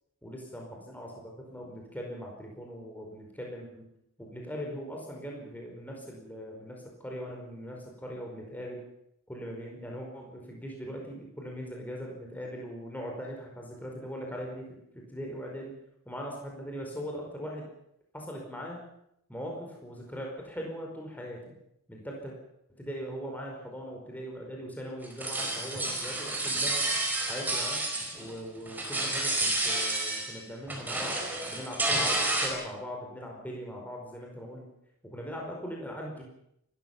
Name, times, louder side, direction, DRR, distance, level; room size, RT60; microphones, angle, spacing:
voice 1, 0.2-3.9 4.2-8.8 9.3-15.7 16.0-17.7 18.1-18.8 19.3-21.5 21.9-22.3 22.8-26.8 27.3-27.8 28.1-34.6 35.0-36.2, equal, 10° left, 0 dB, 4.9 m, -40 dB
sound 1, 25.0-28.4 28.7-30.4 30.7-32.5, right 2 dB, 10° right, 4.8 m, -30 dB
29.0 x 14.0 x 7.4 m, 0.78 s
head